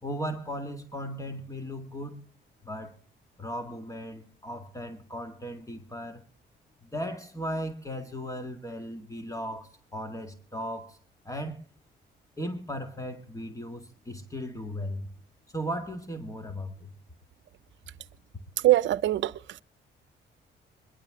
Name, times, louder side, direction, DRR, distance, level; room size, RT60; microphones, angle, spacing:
voice 1, 0.0-2.3 2.6-2.9 3.4-6.2 6.8-11.0 11.3-11.6 12.4-15.1 15.5-16.9, equal, 15° left, 2.1 m, -36 dB
voice 2, 18.6-19.6, right 14 dB, 70° right, 0.7 m, -23 dB
22.5 x 12.0 x 3.7 m
cardioid pair, 90°, 20 cm